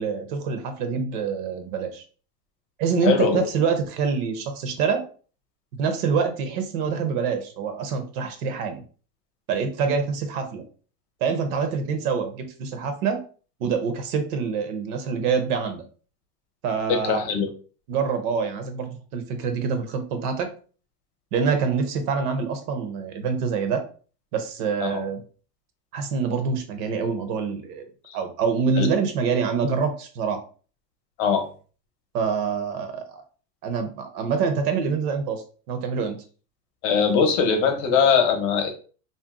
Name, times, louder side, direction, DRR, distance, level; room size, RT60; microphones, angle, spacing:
voice 1, 0.0-2.0 2.8-5.0 5.7-8.8 9.5-10.6 11.2-13.2 13.6-15.8 16.6-17.2 17.9-20.5 21.3-23.8 24.3-25.2 25.9-27.9 28.1-30.4 32.1-33.2 33.6-36.2, right 5 dB, 65° right, 7 dB, 0.8 m, -26 dB
voice 2, 3.0-3.4 16.9-17.5 24.8-25.0 28.8-28.9 31.2-31.5 36.8-38.7, left 6 dB, 45° left, 5 dB, 0.7 m, -21 dB
2.6 x 2.1 x 3.5 m, 0.39 s
supercardioid pair, 145°, 50 cm